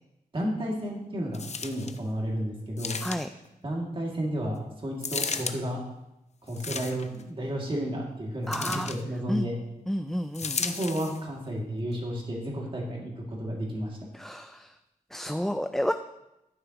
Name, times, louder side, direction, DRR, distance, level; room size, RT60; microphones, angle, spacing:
voice 1, 0.3-3.0 3.6-5.8 6.4-9.6 10.5-14.0, equal, 35° right, -2 dB, 2.4 m, -32 dB
sound 1, 1.3-2.0 2.8-3.5 5.0-5.6 6.5-7.2 8.5-9.0 10.3-11.2 11.9-12.0, left 5 dB, 45° left, 0.6 m, -34 dB
voice 2, 8.5-8.9 9.3-9.5 9.9-10.6 14.1-14.7 15.1-15.9, equal, 5° left, 8 dB, 0.3 m, -30 dB
11.5 x 9.6 x 3.0 m, 0.90 s
wide cardioid pair, 115°, 15 cm